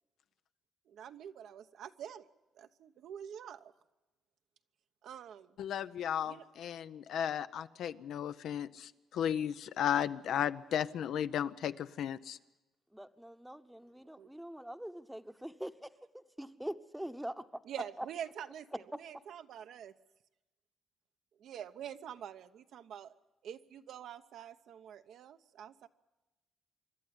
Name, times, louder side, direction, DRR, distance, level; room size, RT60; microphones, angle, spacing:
voice 1, 0.9-2.3 2.6-3.7 5.0-5.5 6.2-6.5 14.2-14.3 17.6-19.9 21.4-23.1 23.4-25.9, right 9 dB, 75° right, 9 dB, 0.9 m, -46 dB
voice 2, 5.6-12.4, left 9 dB, 75° left, 12 dB, 0.7 m, -35 dB
voice 3, 12.9-17.4 18.0-18.1, right 1 dB, 5° right, 10 dB, 0.9 m, -44 dB
26.0 x 12.0 x 9.7 m, 1.1 s
cardioid pair, 90°, 0 cm